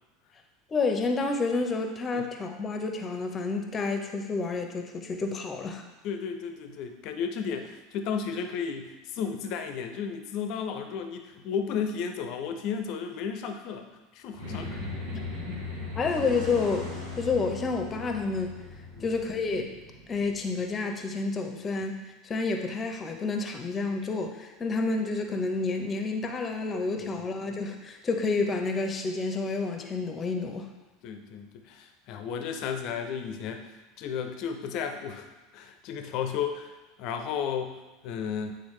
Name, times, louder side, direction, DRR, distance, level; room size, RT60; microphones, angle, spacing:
voice 1, 0.7-5.8 14.5-15.6 16.0-18.6 19.0-19.8 20.1-30.7, left 3 dB, 25° left, 4 dB, 0.9 m, -30 dB
voice 2, 6.0-13.9 14.1-14.8 18.9-19.1 27.0-27.3 31.0-33.7 34.0-36.7 37.0-37.8 38.0-38.5, left 7 dB, 55° left, 6 dB, 0.7 m, -33 dB
sound 1, 14.3-20.9, left 3 dB, 70° right, 1.4 m, -39 dB
8.8 x 3.9 x 3.3 m, 1.1 s
figure-of-eight pair, 75°, 0 cm